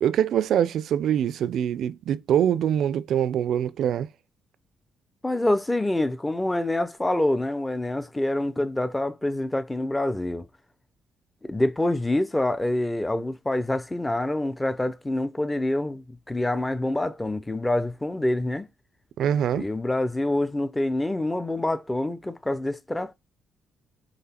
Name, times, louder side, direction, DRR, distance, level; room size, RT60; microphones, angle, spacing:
voice 1, 0.0-4.1 19.2-19.7, right 9 dB, 70° right, 0.3 m, -24 dB
voice 2, 5.2-10.5 11.4-18.7 19.6-23.1, left 1 dB, 10° left, 0.5 m, -26 dB
4.0 x 3.1 x 4.3 m
cardioid pair, 90°, 0 cm